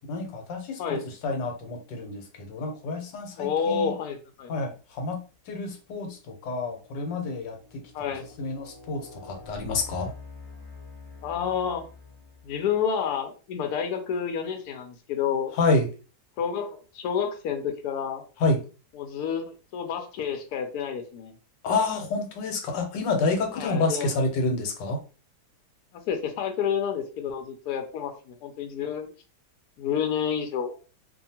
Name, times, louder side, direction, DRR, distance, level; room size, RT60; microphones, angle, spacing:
voice 1, 0.1-3.9 4.5-10.1 15.5-15.9 18.4-18.6 21.6-25.0, left 3 dB, 90° left, 3 dB, 1.4 m, -28 dB
voice 2, 3.4-4.5 7.9-8.2 11.2-11.8 12.4-15.5 16.4-18.2 19.0-21.3 23.5-24.2 25.9-29.1 29.8-30.8, left 7 dB, 75° left, 5 dB, 1.0 m, -29 dB
sound 1, 5.2-5.4 6.0-12.8, left 3 dB, 30° left, 0.6 m, -47 dB
2.7 x 2.5 x 2.7 m, 0.35 s
omnidirectional pair, 1.9 m